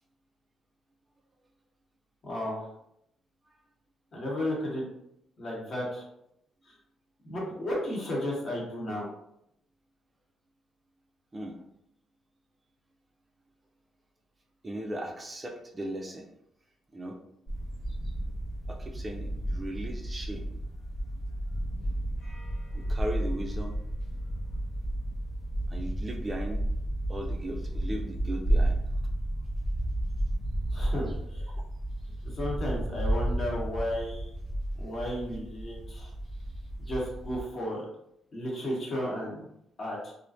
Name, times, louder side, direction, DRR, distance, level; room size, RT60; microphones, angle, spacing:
voice 1, 2.2-2.7 4.1-4.9 5.4-6.0 6.6-6.8 7.2-9.1 30.7-31.5 32.2-34.3 34.8-36.1 36.8-37.8 38.3-39.5 39.8-40.1, left 1 dB, 45° left, -3 dB, 1.0 m, -33 dB
voice 2, 14.6-16.3 16.9-17.2 18.7-20.5 22.7-23.7 25.7-26.6 27.1-28.8, right 1 dB, 25° right, 2 dB, 0.4 m, -37 dB
sound 1, 17.5-37.4, right 1 dB, 80° left, 0.8 m, -32 dB
2.4 x 2.1 x 2.4 m, 0.77 s
cardioid pair, 90°, 0 cm